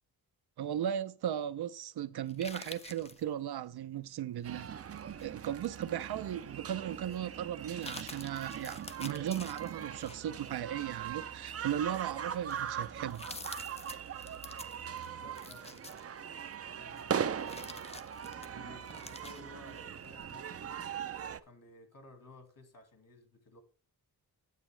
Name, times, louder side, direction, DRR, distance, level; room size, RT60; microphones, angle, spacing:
voice 1, 0.6-4.7 5.2-13.3, right 10 dB, 85° right, 0.6 m, -37 dB
sound 1, 2.3-3.2 4.5-5.5 6.0-6.1 7.0-7.2 7.6-10.5 10.9-11.2 11.8-11.9 12.3-16.5 17.0-20.3 20.7-20.8, left 3 dB, 15° left, 0.5 m, -49 dB
sound 2, 4.4-21.4, right 8 dB, 40° right, 0.4 m, -40 dB
voice 2, 15.0-15.9 16.8-18.1 18.4-20.9 21.4-23.6, left 2 dB, 60° left, 1.9 m, -56 dB
9.4 x 8.0 x 3.2 m
wide cardioid pair, 170°, 37 cm